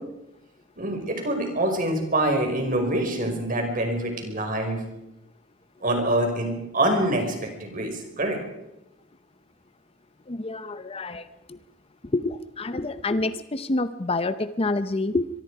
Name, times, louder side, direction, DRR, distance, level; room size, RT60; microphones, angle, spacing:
voice 1, 0.8-4.8 5.8-8.4, right 1 dB, 45° right, 3 dB, 5.2 m, -25 dB
voice 2, 10.3-11.6 12.0-15.3, left 2 dB, 30° left, 12 dB, 0.7 m, -28 dB
24.0 x 23.0 x 4.9 m, 0.90 s
head